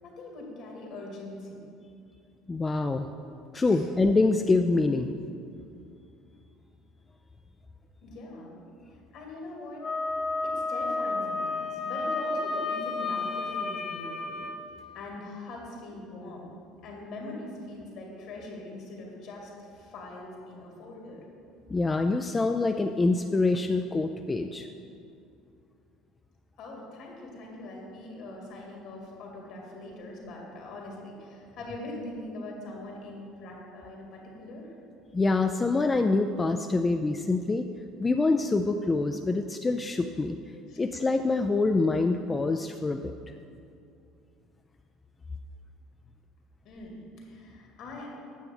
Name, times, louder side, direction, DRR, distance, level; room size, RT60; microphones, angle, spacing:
voice 1, 0.0-1.6 3.6-3.8 8.0-8.6 8.9-9.8 10.4-14.4 14.9-16.5 16.8-21.2 26.6-34.7 40.7-40.8 46.6-48.1, left 2 dB, 65° left, -1 dB, 2.2 m, -42 dB
voice 2, 2.5-3.1 3.5-5.1 21.7-24.7 35.1-37.7 38.0-40.4 40.8-43.1, left 3 dB, 20° left, 5 dB, 0.3 m, -25 dB
Wind instrument woodwind instrument, 9.8-14.6, left 3 dB, 40° left, 0.7 m, -31 dB
9.1 x 6.8 x 3.8 m, 2.5 s
supercardioid pair, 90°, 0 cm